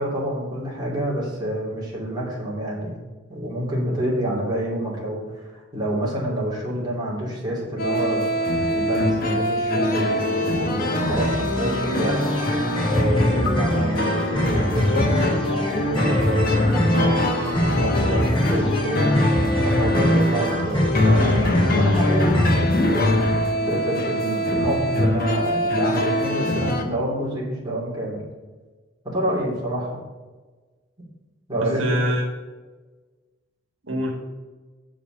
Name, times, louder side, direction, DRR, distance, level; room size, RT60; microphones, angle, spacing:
voice 1, 0.0-3.0 3.3-8.3 8.7-12.3 12.9-19.1 19.6-23.4 23.7-28.2 29.0-30.0 31.5-31.8, right 1 dB, 20° right, -5 dB, 2.8 m, -28 dB
sound 1, 7.8-26.8, left 1 dB, 50° left, 1.0 m, -24 dB
sound 2, 10.8-22.6, equal, 25° left, 2.0 m, -23 dB
voice 2, 16.9-17.8 31.6-32.3 33.8-34.1, right 1 dB, 90° right, 1 dB, 1.4 m, -26 dB
7.0 x 5.0 x 6.5 m, 1.3 s
head